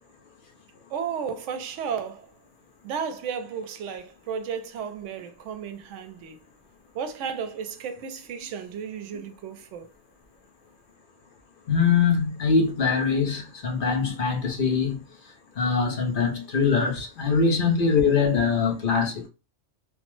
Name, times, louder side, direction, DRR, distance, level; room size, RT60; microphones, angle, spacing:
voice 1, 0.9-2.3 2.8-6.4 6.9-9.9, right 7 dB, 85° right, 0.9 m, -33 dB
voice 2, 11.7-15.0 15.6-19.3, left 5 dB, 50° left, 0.8 m, -23 dB
3.3 x 2.0 x 3.0 m
omnidirectional pair, 1.2 m